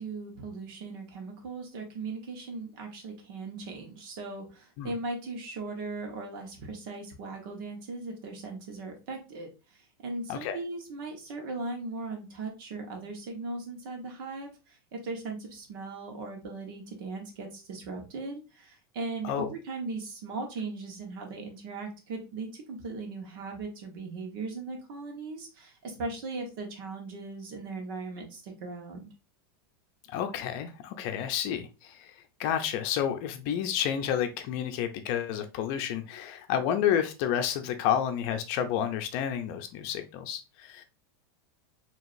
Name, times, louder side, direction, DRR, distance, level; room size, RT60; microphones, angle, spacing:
voice 1, 0.0-9.5 10.0-29.1, right 3 dB, 65° right, 1.4 m, -38 dB
voice 2, 30.1-32.1 32.4-40.8, left 9 dB, 45° left, 0.6 m, -30 dB
4.8 x 2.9 x 2.6 m
supercardioid pair, 150°, 13 cm